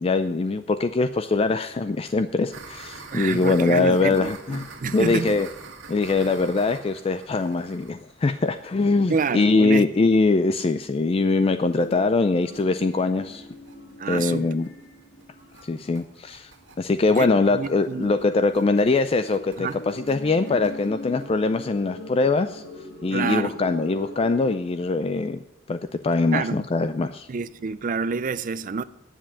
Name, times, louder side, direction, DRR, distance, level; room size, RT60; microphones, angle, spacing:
voice 1, 0.0-4.7 4.9-5.5 5.9-13.5 14.1-14.7 15.6-16.5 16.8-22.6 23.0-25.4 25.7-25.8 26.0-27.3, left 3 dB, 30° left, 0.4 m, -22 dB
sound 1, 2.5-10.2 10.5-10.6 10.9-11.0 11.3-11.4 11.6-11.9 12.2-21.3, right 4 dB, 85° right, 1.9 m, -45 dB
voice 2, 3.1-5.4 9.1-9.9 14.0-14.5 17.2-17.3 17.5-18.1 19.6-19.8 23.1-23.6 26.3-26.6 27.3-28.8, right 5 dB, 45° right, 0.5 m, -28 dB
sound 2, 11.4-16.6 17.4-24.6, left 1 dB, 65° left, 2.1 m, -42 dB
10.0 x 7.5 x 7.0 m
head